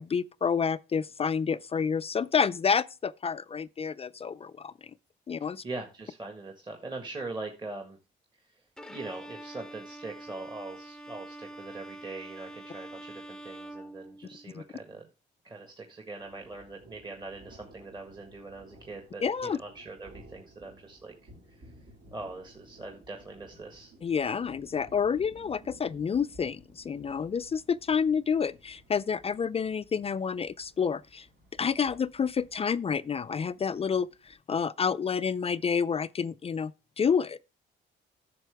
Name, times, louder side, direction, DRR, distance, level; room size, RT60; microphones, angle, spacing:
voice 1, 0.0-4.7 5.3-5.6 14.5-14.6 19.2-19.6 24.0-31.3 31.6-37.4, left 6 dB, 30° left, 0.4 m, -29 dB
voice 2, 5.4-8.0 8.5-15.0 15.4-21.1 21.6-21.7 22.1-23.9, right 3 dB, 20° right, 1.6 m, -42 dB
Bowed string instrument, 8.8-14.7, right 1 dB, 5° left, 0.7 m, -45 dB
sound 1, 16.2-34.3, right 1 dB, 70° right, 4.3 m, -56 dB
10.5 x 6.8 x 3.4 m
cardioid pair, 90°, 20 cm